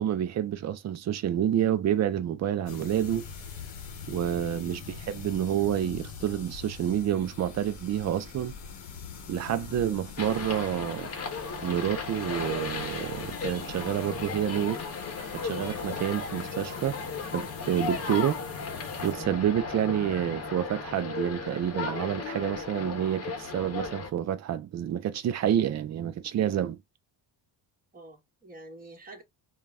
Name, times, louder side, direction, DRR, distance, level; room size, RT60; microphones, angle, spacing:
voice 1, 0.0-3.3 4.1-8.5 9.3-11.1 11.6-14.8 15.3-17.0 17.3-18.4 19.0-26.8, right 10 dB, 40° right, 0.4 m, -28 dB
sound 1, 2.7-19.1, left 6 dB, 80° left, 0.9 m, -43 dB
voice 2, 9.8-10.1 26.1-26.3 27.9-29.2, right 1 dB, 20° right, 1.0 m, -49 dB
sound 2, 10.2-24.1, left 4 dB, 35° left, 0.9 m, -36 dB
2.2 x 2.1 x 3.4 m
cardioid pair, 105°, 45 cm